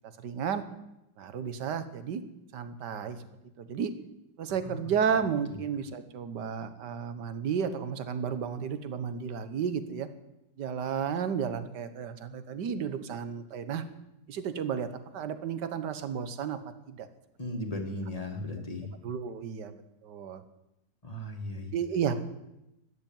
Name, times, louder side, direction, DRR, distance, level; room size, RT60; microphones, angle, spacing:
voice 1, 0.2-0.6 1.2-2.2 2.5-3.2 3.6-3.9 4.4-10.1 10.6-13.8 14.3-16.6 16.9-17.1 19.0-20.4 21.7-22.1, right 7 dB, 70° right, 11 dB, 1.7 m, -32 dB
voice 2, 17.4-18.9 21.0-21.7, left 1 dB, 20° left, 2 dB, 1.9 m, -36 dB
13.5 x 9.7 x 8.9 m, 0.91 s
omnidirectional pair, 2.0 m